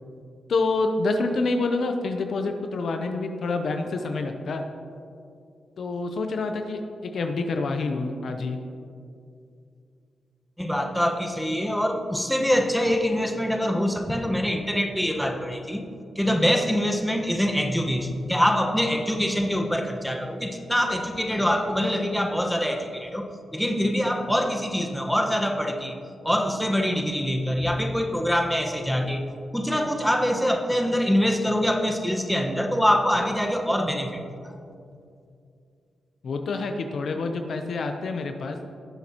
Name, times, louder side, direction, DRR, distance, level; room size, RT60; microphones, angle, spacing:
voice 1, 0.5-4.6 5.8-8.6 36.2-38.6, left 3 dB, 65° left, 5 dB, 0.7 m, -27 dB
voice 2, 10.6-15.8 16.1-23.3 23.5-26.0 26.2-29.2 29.5-34.5, equal, 5° left, 3 dB, 1.3 m, -24 dB
17.5 x 7.6 x 3.0 m, 2.4 s
supercardioid pair, 45°, 0 cm